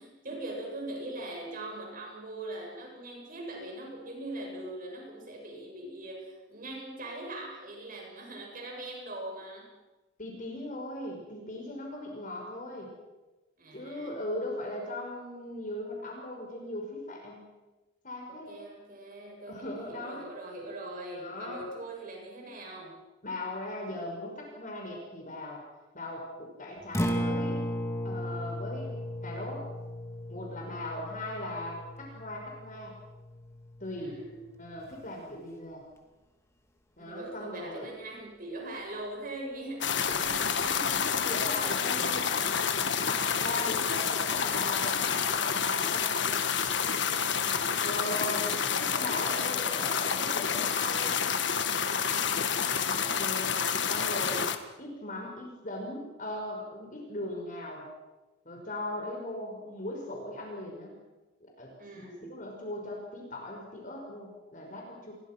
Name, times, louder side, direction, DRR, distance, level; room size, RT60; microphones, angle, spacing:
voice 1, 0.0-9.7 13.6-14.2 18.3-23.0 34.0-34.5 37.0-41.2 43.5-43.7 47.2-48.5 49.3-50.0 52.5-53.2 61.8-62.4, right 1 dB, 45° right, 0 dB, 8.0 m, -42 dB
voice 2, 10.2-12.9 13.7-17.4 18.0-18.6 19.5-20.3 21.2-21.7 23.2-25.6 25.9-27.6 28.0-28.9 29.2-29.7 30.3-32.9 33.8-34.3 34.6-35.8 37.0-37.9 41.2-42.5 43.1-46.4 47.8-51.3 52.8-54.5 54.8-57.9 58.5-61.0 61.4-65.1, left 1 dB, 40° left, 0 dB, 5.6 m, -39 dB
Acoustic guitar, 26.8-35.0, equal, 15° left, 2.6 m, -36 dB
sound 1, 39.8-54.6, left 7 dB, 60° left, 1.6 m, -29 dB
29.5 x 22.5 x 6.1 m, 1.1 s
head